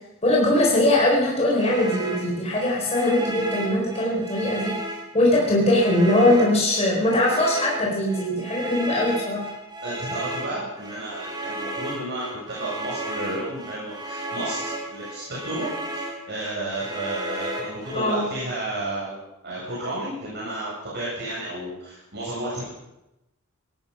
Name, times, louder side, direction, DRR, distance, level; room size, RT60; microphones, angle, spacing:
voice 1, 0.2-4.7 5.1-9.5 17.9-18.2, left 1 dB, 30° left, -3 dB, 4.4 m, -21 dB
sound 1, 1.6-18.0, right 1 dB, 20° right, 2.6 m, -34 dB
voice 2, 9.8-15.7 15.9-22.7, right 1 dB, 55° right, -7 dB, 7.5 m, -32 dB
19.0 x 13.5 x 5.6 m, 0.91 s
head